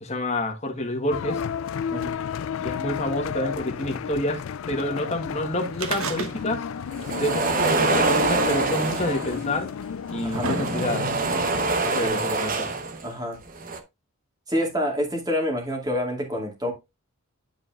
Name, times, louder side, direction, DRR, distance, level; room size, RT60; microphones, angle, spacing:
voice 1, 0.0-1.4 2.6-4.4 4.7-6.6 7.2-9.7 10.1-11.1 11.9-12.7, left 1 dB, 30° left, 1.4 m, -28 dB
sound 1, 1.1-11.8, left 7 dB, 70° left, 0.4 m, -32 dB
voice 2, 1.9-2.2 10.2-10.5 11.8-12.4 13.0-13.4 14.5-16.7, equal, 20° right, 2.2 m, -28 dB
sound 2, 5.7-6.8 7.0-7.1 8.1-8.2 9.1-9.2 9.9-11.2 12.1-12.2, right 3 dB, 80° right, 1.2 m, -31 dB
sound 3, 6.9-9.5 10.2-13.0 13.4-13.8, right 3 dB, 40° right, 1.0 m, -25 dB
11.0 x 4.8 x 2.5 m
head